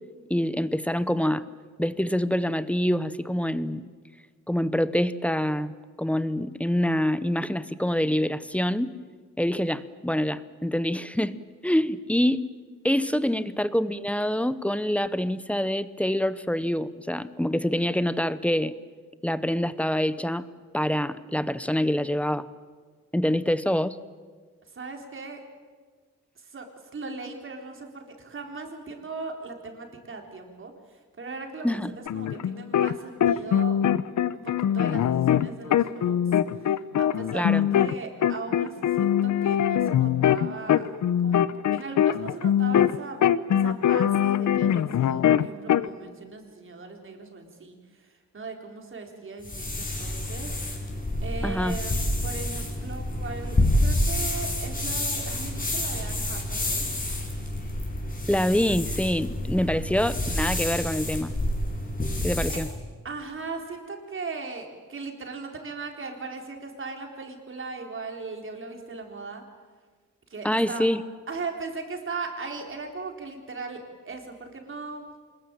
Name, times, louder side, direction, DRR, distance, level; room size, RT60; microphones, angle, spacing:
voice 1, 0.3-1.5 1.8-3.9 4.5-8.9 9.4-11.4 11.6-12.5 12.8-18.7 19.2-20.5 20.7-22.5 23.1-24.0 31.6-31.9 37.3-37.7 51.4-51.8 58.3-61.3 62.2-62.7 70.4-71.0, left 1 dB, 5° left, 15 dB, 0.8 m, -26 dB
voice 2, 24.7-25.4 26.4-33.8 34.3-36.2 36.6-40.9 41.2-41.4 41.7-43.2 43.5-50.5 51.2-56.9 62.5-62.6 63.0-69.4 70.3-70.8 71.3-75.1, right 4 dB, 45° right, 3 dB, 4.1 m, -38 dB
sound 1, 32.1-32.9 33.2-37.9 38.2-43.0 43.2-45.9, left 10 dB, 75° left, 0.8 m, -22 dB
sound 2, 49.4-62.7, left 1 dB, 30° left, 5.4 m, -28 dB
25.5 x 21.0 x 9.1 m, 1.5 s
wide cardioid pair, 125°, 29 cm